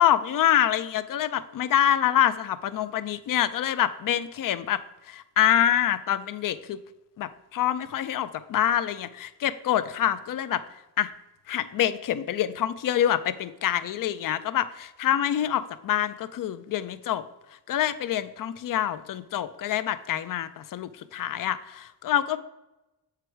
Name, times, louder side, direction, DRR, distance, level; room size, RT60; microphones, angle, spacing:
voice 1, 0.0-6.8 7.2-10.6 11.0-11.1 11.5-17.3 17.7-22.4, left 11 dB, 50° left, 15 dB, 0.4 m, -26 dB
7.8 x 4.7 x 4.6 m, 0.98 s
wide cardioid pair, 170°, 42 cm